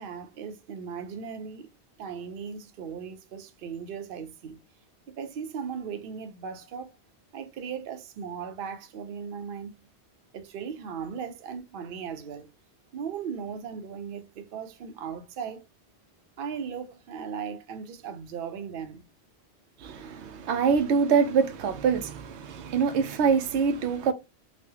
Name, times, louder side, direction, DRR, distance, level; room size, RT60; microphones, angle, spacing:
voice 1, 0.0-1.7 2.0-4.6 5.1-7.0 7.3-9.9 10.3-12.5 12.9-15.7 16.4-19.0, right 6 dB, 60° right, 0.7 m, -37 dB
voice 2, 19.8-24.1, right 6 dB, 90° right, 0.9 m, -25 dB
4.1 x 2.1 x 2.7 m
omnidirectional pair, 1.1 m